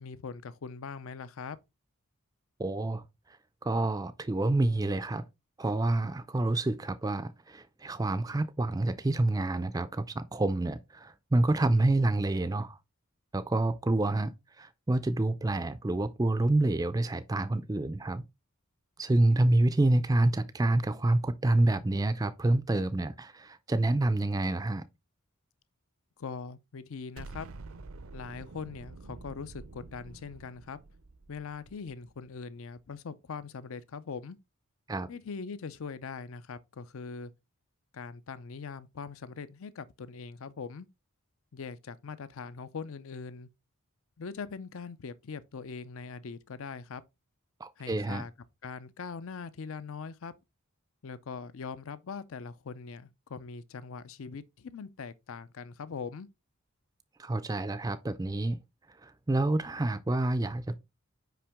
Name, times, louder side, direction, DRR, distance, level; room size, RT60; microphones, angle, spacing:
voice 1, 0.0-1.6 26.2-27.5 28.1-30.8 31.3-34.4 35.1-37.3 37.9-40.9 41.5-43.5 44.2-47.0 47.8-48.3 48.6-50.3 51.0-56.3, left 5 dB, 70° left, 0.5 m, -41 dB
voice 2, 2.6-3.0 3.6-5.2 5.6-12.8 13.3-18.2 19.0-24.8 34.9-35.1 47.6-48.3 57.2-58.6 59.0-60.7, right 2 dB, 15° right, 0.3 m, -28 dB
Explosion, 27.2-32.3, right 3 dB, 70° right, 0.6 m, -48 dB
5.7 x 5.1 x 3.5 m
head